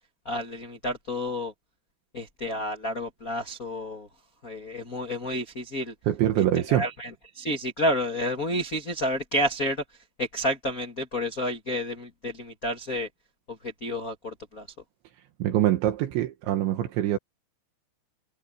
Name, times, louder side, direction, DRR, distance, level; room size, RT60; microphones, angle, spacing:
voice 1, 0.2-1.5 2.1-4.1 4.4-5.9 6.4-7.1 7.3-9.8 10.2-13.1 13.5-14.7, left 1 dB, 90° left, 0.7 m, -30 dB
voice 2, 6.1-6.9 15.4-17.2, right 12 dB, 75° right, 3.7 m, -24 dB
omnidirectional pair, 5.4 m